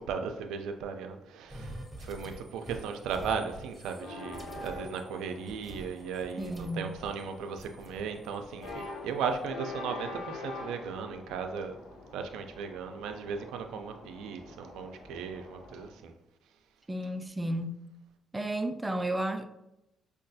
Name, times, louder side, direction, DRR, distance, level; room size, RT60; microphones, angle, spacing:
voice 1, 0.0-11.8 12.1-16.1, right 6 dB, 90° right, 0.4 m, -36 dB
sound 1, 1.5-7.2 7.6-8.9, right 1 dB, 10° left, 1.0 m, -47 dB
sound 2, 4.0-15.9, left 2 dB, 65° left, 0.8 m, -45 dB
voice 2, 6.4-6.9 16.9-17.8 18.3-19.5, right 1 dB, 15° right, 0.3 m, -32 dB
5.1 x 2.3 x 2.6 m
cardioid pair, 90°, 0 cm